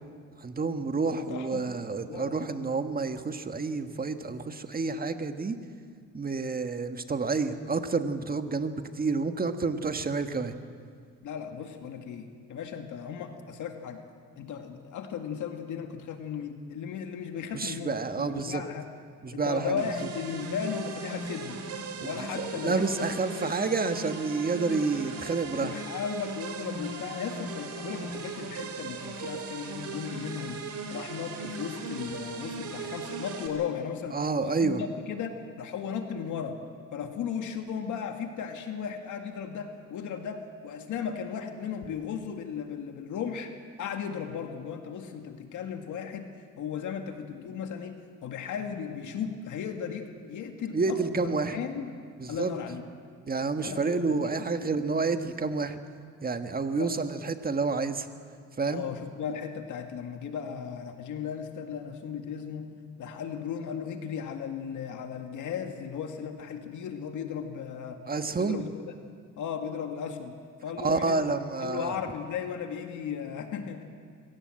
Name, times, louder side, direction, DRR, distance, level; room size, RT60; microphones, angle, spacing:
voice 1, 0.4-5.6 6.1-10.5 17.5-18.6 19.2-19.8 22.0-22.1 22.6-25.7 34.1-34.8 50.7-51.6 52.2-52.5 53.3-55.8 56.2-58.1 58.6-58.8 68.1-68.6 70.8-72.0, right 4 dB, 30° right, 7 dB, 1.5 m, -29 dB
voice 2, 1.0-1.7 2.1-2.8 11.2-14.0 14.4-18.9 19.3-21.6 22.0-23.2 23.4-23.5 25.6-30.6 30.9-36.6 36.9-43.5 43.8-46.3 46.6-51.9 52.3-52.9 53.6-54.7 56.7-56.9 58.7-62.7 63.0-68.0 68.4-68.8 69.4-71.2 71.6-73.8, left 7 dB, 80° left, 5 dB, 2.1 m, -36 dB
sound 1, 19.8-33.5, right 4 dB, 70° right, 3.4 m, -38 dB
25.0 x 17.0 x 7.8 m, 2.1 s
cardioid pair, 90°, 30 cm